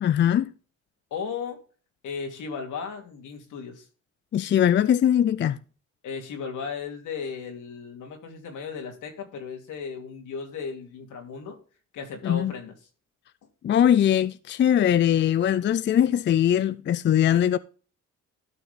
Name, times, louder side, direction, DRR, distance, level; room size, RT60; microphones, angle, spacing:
voice 1, 0.0-0.5 4.3-5.6 12.2-12.5 13.6-17.6, left 10 dB, 40° left, 0.4 m, -21 dB
voice 2, 1.1-1.6 2.0-3.9 6.0-11.6 11.9-12.7, left 5 dB, 80° left, 2.8 m, -35 dB
12.5 x 6.1 x 3.6 m
cardioid pair, 90°, 30 cm